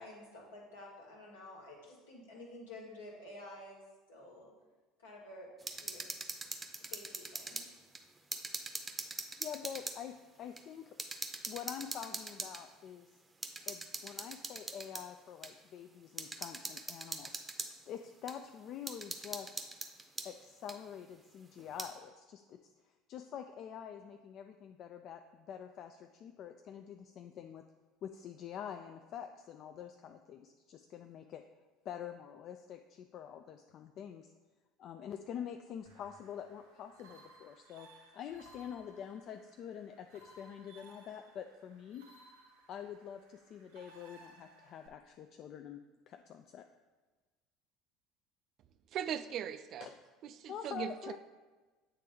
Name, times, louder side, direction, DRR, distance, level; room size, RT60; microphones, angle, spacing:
voice 1, 0.0-3.8 4.1-4.5 5.0-5.5 5.7-6.1 6.9-7.6, left 1 dB, 80° left, -2 dB, 1.4 m, -51 dB
sound 1, 5.6-7.7 7.9-10.0 10.6-10.7 11.0-12.6 13.4-15.0 15.4-15.5 16.2-17.7 18.3-18.4 18.9-20.3 20.7-20.8 21.6-21.9, right 3 dB, 20° right, 0.6 m, -42 dB
voice 2, 9.4-11.0 11.5-13.2 13.7-17.4 17.9-19.6 20.2-27.6 28.0-31.4 31.8-34.3 34.8-37.9 38.1-42.1 42.7-46.6 49.8-50.0 50.5-51.2, left 9 dB, 50° left, 6 dB, 0.3 m, -46 dB
sound 2, 35.8-44.9, right 2 dB, 75° right, 0.7 m, -60 dB
voice 3, 48.9-49.9 50.4-51.2, right 9 dB, 50° right, 12 dB, 0.3 m, -39 dB
8.3 x 3.3 x 3.5 m, 1.3 s
hypercardioid pair, 65°, 0 cm